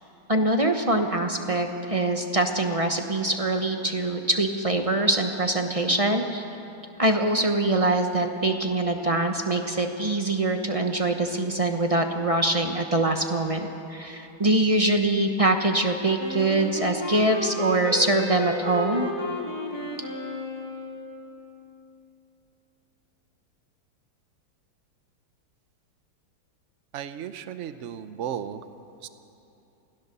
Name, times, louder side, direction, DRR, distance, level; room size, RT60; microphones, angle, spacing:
voice 1, 0.3-6.4 7.0-19.1, right 2 dB, 30° right, 4 dB, 0.7 m, -24 dB
Wind instrument woodwind instrument, 16.2-21.2, left 1 dB, 10° left, 2.5 m, -32 dB
voice 2, 26.9-28.6 29.0-29.1, right 9 dB, 65° right, 11 dB, 0.7 m, -34 dB
26.0 x 16.5 x 6.8 m, 2.8 s
omnidirectional pair, 2.3 m